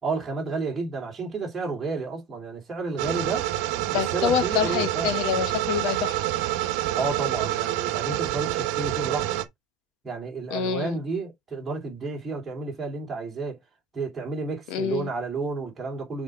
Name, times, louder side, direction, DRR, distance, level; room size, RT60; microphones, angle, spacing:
voice 1, 0.0-3.5 3.9-5.2 7.0-9.4 10.0-13.6 13.9-16.2, right 4 dB, 15° right, 3.1 m, -31 dB
sound 1, 3.0-9.4, right 14 dB, 70° right, 1.2 m, -27 dB
voice 2, 3.9-6.2 10.5-11.0 14.7-15.1, left 9 dB, 60° left, 1.1 m, -26 dB
6.3 x 4.9 x 4.5 m
cardioid pair, 180°, 0 cm